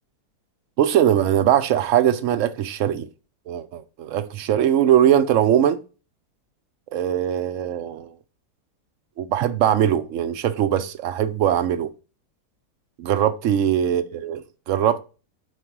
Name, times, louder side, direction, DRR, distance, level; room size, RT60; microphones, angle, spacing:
voice 1, 0.8-3.1 3.5-5.8 6.9-8.1 9.2-11.9 13.0-15.0, right 10 dB, 65° right, 0.8 m, -21 dB
4.8 x 4.6 x 5.9 m
omnidirectional pair, 1.7 m